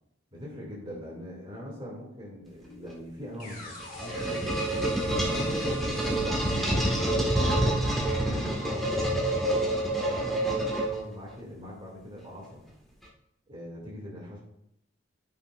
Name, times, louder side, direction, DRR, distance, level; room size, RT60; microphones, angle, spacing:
voice 1, 0.3-4.4 5.3-8.9 9.3-12.6 13.5-14.4, equal, 25° right, -4 dB, 2.4 m, -42 dB
sound 1, 3.4-11.3, left 1 dB, 45° left, 2.3 m, -45 dB
sound 2, 3.6-11.3, right 1 dB, ahead, 1.6 m, -27 dB
13.5 x 5.8 x 2.5 m, 0.78 s
head